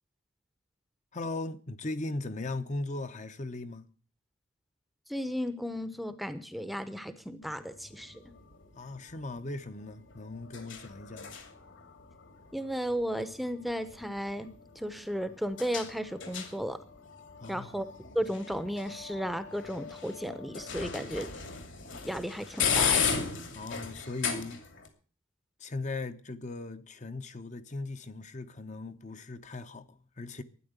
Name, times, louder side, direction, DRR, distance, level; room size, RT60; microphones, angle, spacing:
voice 1, 1.1-3.9 8.8-11.4 17.4-17.7 23.5-24.6 25.6-30.4, left 2 dB, 35° left, 0.8 m, -38 dB
voice 2, 5.1-8.2 12.5-14.5 14.8-16.8 17.5-17.9 18.1-21.3 22.0-23.0, equal, ahead, 0.8 m, -34 dB
sound 1, 7.4-24.9, left 6 dB, 65° left, 2.6 m, -37 dB
12.5 x 9.9 x 8.0 m
head